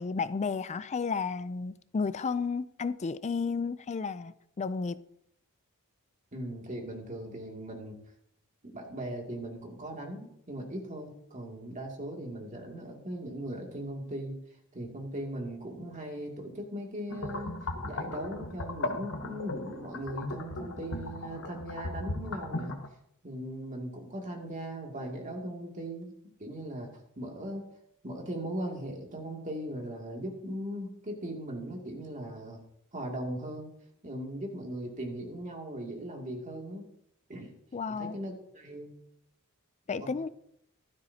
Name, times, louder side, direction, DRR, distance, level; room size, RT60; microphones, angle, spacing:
voice 1, 0.0-5.0 37.7-38.1 39.9-40.3, left 5 dB, 30° left, 0.4 m, -32 dB
voice 2, 6.3-8.0 8.6-14.4 14.7-22.8 23.2-26.1 26.4-26.9 27.2-27.7 28.0-32.6 32.9-33.7 34.0-36.9 37.3-37.5 37.9-39.0 40.0-40.3, right 1 dB, 35° right, 2.5 m, -39 dB
sound 1, 17.1-22.9, left 2 dB, 60° left, 1.1 m, -37 dB
15.0 x 12.5 x 2.8 m
head